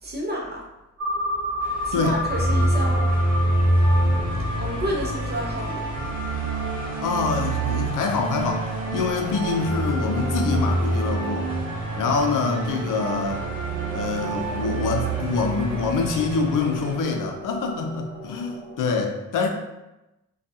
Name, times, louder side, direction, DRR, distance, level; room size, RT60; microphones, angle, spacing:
voice 1, 0.0-0.6 1.8-3.1 4.6-5.8, equal, 35° right, -1 dB, 0.6 m, -30 dB
sound 1, 1.0-18.8, left 1 dB, 55° right, 1.0 m, -35 dB
sound 2, 1.6-17.0, left 1 dB, 30° left, 0.7 m, -43 dB
sound 3, 2.3-16.8, right 2 dB, 90° right, 0.6 m, -26 dB
voice 2, 7.0-11.5 12.0-13.4 13.9-19.5, left 4 dB, 85° left, 3 dB, 0.5 m, -25 dB
2.3 x 2.2 x 2.7 m, 0.97 s
cardioid pair, 95°, 31 cm